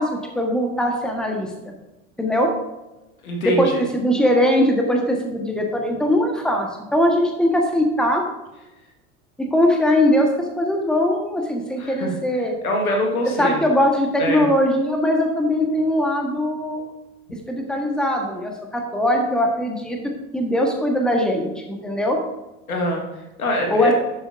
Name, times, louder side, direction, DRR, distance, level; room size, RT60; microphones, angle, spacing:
voice 1, 0.0-1.7 2.2-2.5 3.4-8.2 9.4-12.5 13.2-16.8 17.5-20.0 20.3-22.2 23.7-23.9, left 1 dB, ahead, 2 dB, 1.3 m, -21 dB
voice 2, 3.2-3.8 11.8-12.2 12.6-13.6 14.2-14.5 22.7-23.9, equal, 75° left, 1 dB, 1.8 m, -24 dB
11.5 x 7.0 x 2.6 m, 1.0 s
figure-of-eight pair, 70°, 43 cm